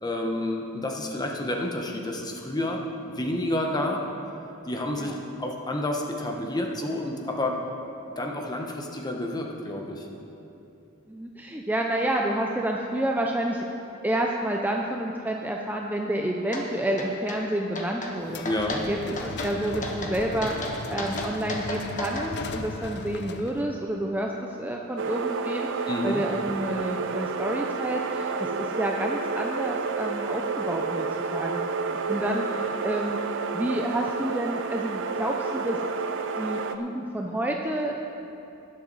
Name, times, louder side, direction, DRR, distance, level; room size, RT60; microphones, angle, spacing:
voice 1, 0.0-2.8 3.1-4.0 4.7-5.1 5.4-7.6 8.2-10.1 18.4-18.8 25.9-26.2 32.5-32.6, left 1 dB, 20° left, 1 dB, 1.1 m, -29 dB
voice 2, 11.1-13.6 14.0-18.4 18.9-31.1 31.3-31.6 32.1-35.8 36.4-38.0, right 1 dB, 10° right, 0 dB, 0.5 m, -29 dB
sound 1, 16.5-16.6 17.0-17.4 17.7-18.1 18.4-18.8 19.2-19.5 19.8-20.1 20.4-22.3, left 1 dB, 40° left, 1.4 m, -33 dB
sound 2, 18.2-23.7, left 3 dB, 55° left, 0.6 m, -36 dB
sound 3, 25.0-36.8, right 4 dB, 60° right, 0.6 m, -30 dB
19.5 x 7.6 x 4.1 m, 2.8 s
head